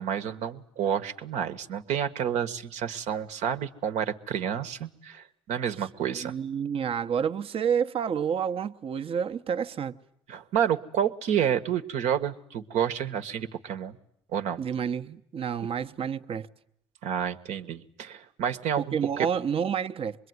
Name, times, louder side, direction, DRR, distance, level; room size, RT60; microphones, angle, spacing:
voice 1, 0.0-6.3 10.3-14.0 14.3-14.6 17.0-18.9, right 9 dB, 70° right, 1.5 m, -29 dB
voice 2, 6.1-9.9 14.6-16.5 18.8-20.2, right 7 dB, 50° right, 1.1 m, -29 dB
25.5 x 22.0 x 9.6 m
supercardioid pair, 70°, 12 cm